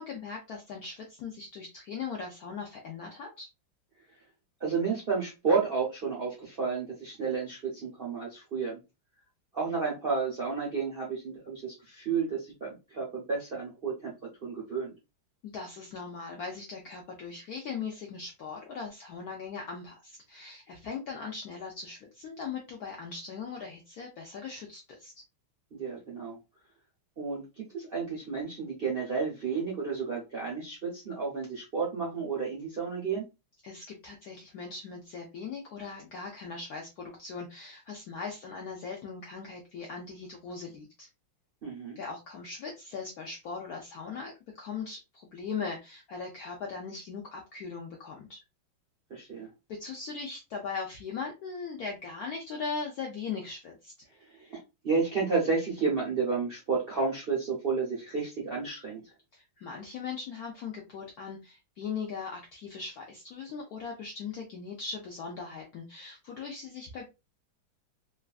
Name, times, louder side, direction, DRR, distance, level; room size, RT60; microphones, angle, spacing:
voice 1, 0.0-3.5 15.4-25.1 33.6-41.1 42.0-48.4 49.7-53.9 59.3-67.1, left 5 dB, 75° left, 0 dB, 0.8 m, -39 dB
voice 2, 4.6-8.8 9.5-14.1 14.4-14.9 25.7-26.4 27.2-27.4 27.7-33.3 41.6-42.0 49.1-49.5 54.3-59.0, right 5 dB, 55° right, -4 dB, 0.6 m, -31 dB
3.2 x 2.4 x 2.3 m, 0.26 s
omnidirectional pair, 2.2 m